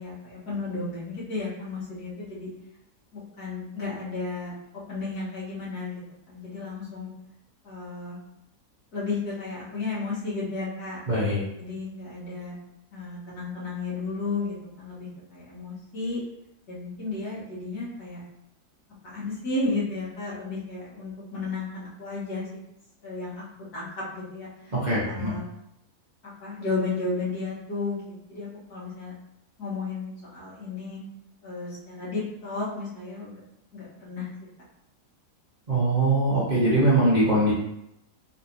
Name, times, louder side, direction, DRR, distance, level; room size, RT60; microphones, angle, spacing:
voice 1, 0.0-2.5 3.1-4.5 4.9-5.9 6.3-7.1 7.6-8.2 8.9-11.0 11.6-12.6 12.9-16.2 16.7-18.2 19.0-22.5 23.0-23.4 23.7-24.7 25.1-25.4 26.4-28.0 28.3-29.1 29.6-31.0 31.4-33.4 33.7-34.3, left 3 dB, 75° left, -8 dB, 2.0 m, -33 dB
voice 2, 11.1-11.4 24.7-25.3 35.7-37.5, right 1 dB, 30° right, -9 dB, 1.1 m, -22 dB
4.0 x 3.3 x 2.8 m, 0.81 s
omnidirectional pair, 1.7 m